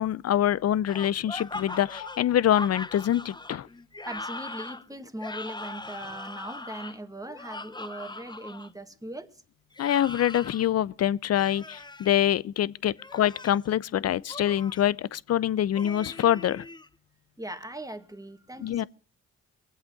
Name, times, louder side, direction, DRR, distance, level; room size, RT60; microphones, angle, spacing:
voice 1, 0.0-3.7 9.8-16.7 18.6-18.8, left 11 dB, 55° left, 0.6 m, -25 dB
sound 1, 0.9-8.7 9.7-10.6 11.3-12.1 12.9-13.6 14.3-14.8 15.7-16.9, left 2 dB, 15° left, 0.8 m, -40 dB
voice 2, 4.1-9.4 17.4-18.9, right 1 dB, 10° right, 1.8 m, -40 dB
22.5 x 8.1 x 5.9 m
supercardioid pair, 55°, 29 cm